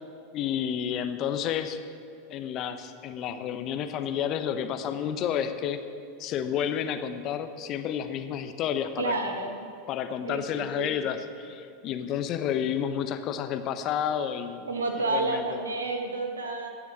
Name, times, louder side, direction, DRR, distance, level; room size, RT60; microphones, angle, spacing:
voice 1, 0.3-1.8 2.3-5.8 6.2-9.1 9.4-9.5 9.9-14.7 15.1-15.6, left 9 dB, 40° left, 9 dB, 0.8 m, -30 dB
voice 2, 9.0-9.7 10.2-10.9 14.7-16.7, right 3 dB, 80° right, 4 dB, 1.4 m, -30 dB
15.0 x 6.2 x 7.3 m, 2.6 s
figure-of-eight pair, 85°, 0 cm